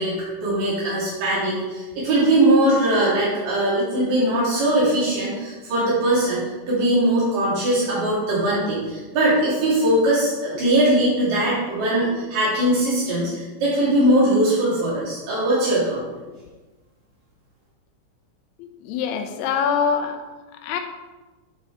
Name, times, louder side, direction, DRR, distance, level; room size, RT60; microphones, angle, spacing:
voice 1, 0.0-6.4 6.7-16.0, right 1 dB, 85° right, -9 dB, 4.3 m, -20 dB
voice 2, 18.8-20.2 20.6-20.8, left 6 dB, 80° left, 5 dB, 1.6 m, -23 dB
10.5 x 4.6 x 3.5 m, 1.2 s
omnidirectional pair, 3.8 m